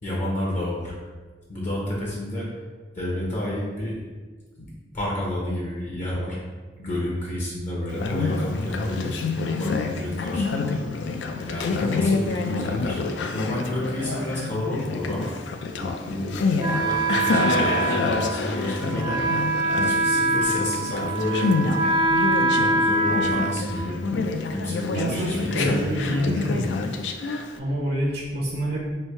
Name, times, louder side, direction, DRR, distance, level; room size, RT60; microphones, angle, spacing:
voice 1, 0.0-0.9 1.5-2.5 2.9-4.0 4.6-4.7 4.9-6.4 6.8-10.8 11.4-13.0 13.3-15.3 15.7-16.4 16.8-19.2 19.8-21.5 22.0-24.0 24.5-26.3, left 1 dB, 45° left, -5 dB, 0.7 m, -30 dB
Conversation, 7.9-27.6, left 4 dB, 75° left, 0.3 m, -27 dB
Wind instrument woodwind instrument, 16.6-24.3, right 2 dB, 25° right, 0.4 m, -24 dB
voice 2, 24.9-26.7 27.6-28.9, right 1 dB, 65° right, -4 dB, 0.6 m, -27 dB
3.2 x 2.6 x 4.3 m, 1.4 s
head